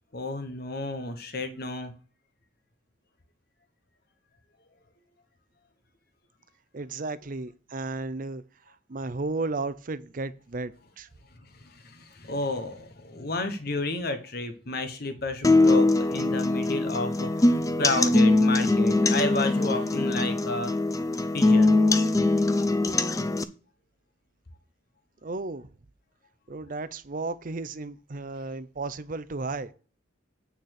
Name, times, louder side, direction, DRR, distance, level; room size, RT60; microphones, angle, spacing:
voice 1, 0.1-1.9 11.4-20.7 21.3-21.8, left 2 dB, 55° left, 1.1 m, -32 dB
voice 2, 6.7-11.1 25.2-25.7 26.5-29.7, right 3 dB, 45° right, 0.6 m, -34 dB
sound 1, 15.4-23.4, left 2 dB, 15° left, 0.5 m, -22 dB
9.2 x 4.2 x 6.5 m
head